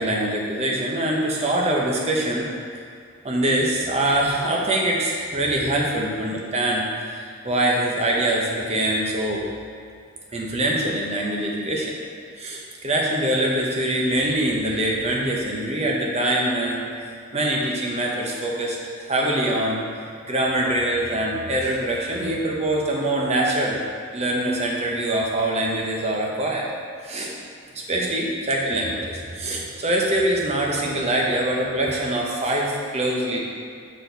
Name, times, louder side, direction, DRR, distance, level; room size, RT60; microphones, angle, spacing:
voice 1, 0.0-2.5 3.2-9.4 10.3-12.0 12.4-16.8 17.3-19.8 20.3-23.8 24.1-26.6 27.0-27.3 27.9-33.4, right 1 dB, 30° right, -2 dB, 0.8 m, -24 dB
6.4 x 4.1 x 4.0 m, 2.3 s
head